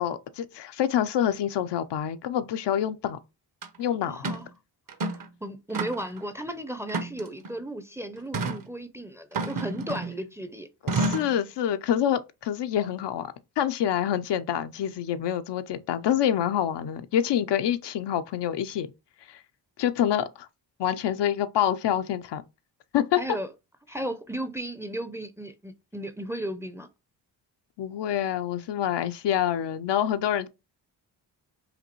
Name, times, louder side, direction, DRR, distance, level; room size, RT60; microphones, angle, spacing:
voice 1, 0.0-3.2 3.8-4.2 10.8-18.9 19.3-19.4 19.8-20.5 20.8-22.4 22.9-23.2 27.8-30.5, left 10 dB, 70° left, 0.6 m, -26 dB
sound 1, 3.6-3.7 4.2-4.5 4.9-5.3 5.7-6.2 6.9-7.5 8.3-8.6 9.3-10.2 10.9-11.4, right 3 dB, 45° right, 0.9 m, -30 dB
voice 2, 4.1-4.5 5.1-10.7 23.2-23.5 23.9-26.9, right 1 dB, 5° right, 0.5 m, -35 dB
5.0 x 2.6 x 3.0 m
cardioid pair, 65°, 45 cm